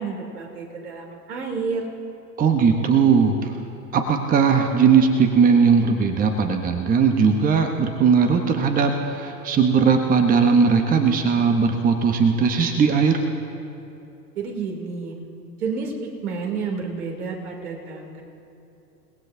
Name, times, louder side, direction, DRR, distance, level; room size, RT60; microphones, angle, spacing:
voice 1, 0.0-1.9 14.4-15.1 15.6-18.2, right 4 dB, 65° right, 0 dB, 3.0 m, -30 dB
voice 2, 2.4-3.5 3.9-13.2, right 5 dB, 20° right, 5 dB, 1.0 m, -18 dB
29.0 x 18.0 x 2.7 m, 2.8 s
figure-of-eight pair, 90°, 48 cm